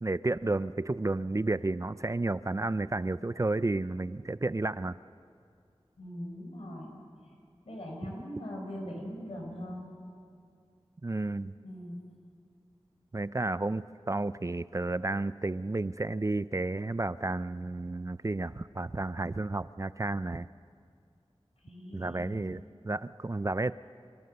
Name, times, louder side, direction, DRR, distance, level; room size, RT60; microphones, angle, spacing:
voice 1, 0.0-4.9 11.0-11.5 13.1-20.5 21.9-23.7, right 2 dB, 30° right, 16 dB, 0.4 m, -32 dB
voice 2, 6.0-6.9 7.2-7.3 7.6-9.9 11.6-12.0 21.6-22.4, equal, 85° left, 0 dB, 4.9 m, -41 dB
29.0 x 13.5 x 6.6 m, 2.2 s
wide cardioid pair, 55°, 10 cm